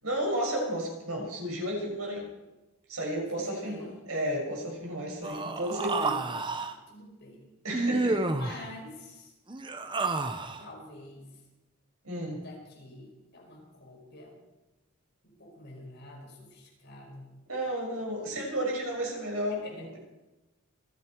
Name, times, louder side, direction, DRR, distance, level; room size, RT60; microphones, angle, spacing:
voice 1, 0.0-2.3 2.9-6.2 7.6-8.6 12.0-12.4 17.5-20.0, right 1 dB, 80° right, -1 dB, 6.2 m, -33 dB
voice 2, 3.3-4.0 6.6-7.5 8.3-9.3 10.6-11.3 12.3-14.3 15.2-17.3 19.3-20.0, left 1 dB, 50° left, -1 dB, 5.2 m, -48 dB
Human voice, 5.2-6.7 7.7-8.6 9.5-10.6, right 3 dB, 20° right, 0.8 m, -30 dB
27.0 x 9.7 x 4.6 m, 1.1 s
head